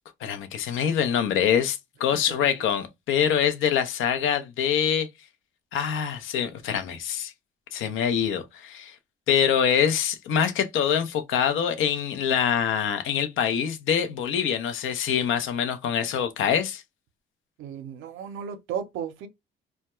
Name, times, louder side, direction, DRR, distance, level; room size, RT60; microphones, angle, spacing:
voice 1, 0.2-5.1 5.7-7.3 7.7-8.9 9.3-16.8, left 8 dB, 80° left, 0.5 m, -25 dB
voice 2, 17.6-19.3, right 8 dB, 90° right, 0.5 m, -34 dB
2.2 x 2.1 x 2.8 m
cardioid pair, 90°, 20 cm